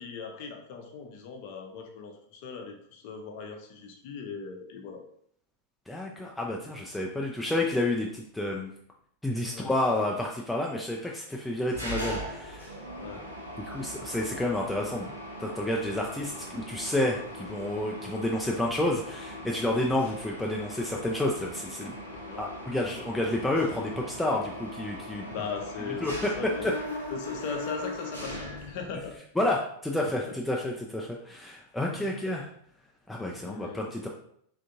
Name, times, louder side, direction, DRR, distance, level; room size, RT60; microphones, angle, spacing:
voice 1, 0.0-5.0 9.4-9.7 13.0-13.3 22.1-22.5 25.2-26.1 26.4-26.7 27.1-29.1 30.2-30.4 31.9-32.2 33.3-33.9, left 5 dB, 50° left, 3 dB, 0.6 m, -39 dB
voice 2, 5.9-8.7 9.2-12.8 13.6-15.1 15.4-21.9 22.4-25.3 25.9-26.1 26.6-26.7 29.4-32.5 33.1-34.1, left 1 dB, 5° left, -2 dB, 0.3 m, -30 dB
Mechanisms, 11.7-29.1, left 1 dB, 90° right, 0.9 m, -40 dB
3.4 x 2.6 x 2.6 m, 0.67 s
figure-of-eight pair, 90°, 0 cm